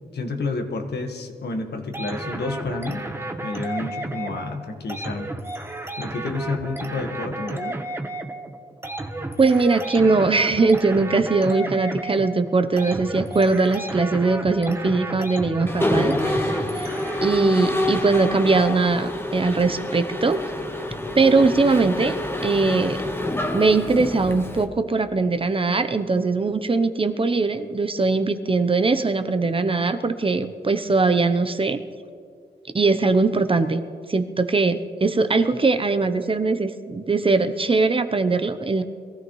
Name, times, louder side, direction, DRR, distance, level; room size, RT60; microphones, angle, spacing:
voice 1, 0.1-3.0 3.4-5.3 6.0-7.7, left 3 dB, 70° left, 4 dB, 1.5 m, -30 dB
sound 1, 1.9-17.7, right 1 dB, 15° right, 1.1 m, -33 dB
voice 2, 9.4-16.9 17.2-20.4 21.1-23.0 23.5-31.8 32.7-33.8 34.1-38.8, right 3 dB, 30° right, 9 dB, 0.8 m, -21 dB
Mechanisms, 15.7-24.6, left 1 dB, 15° left, 1.3 m, -27 dB
22.0 x 14.0 x 3.2 m, 2.2 s
cardioid pair, 80°, 18 cm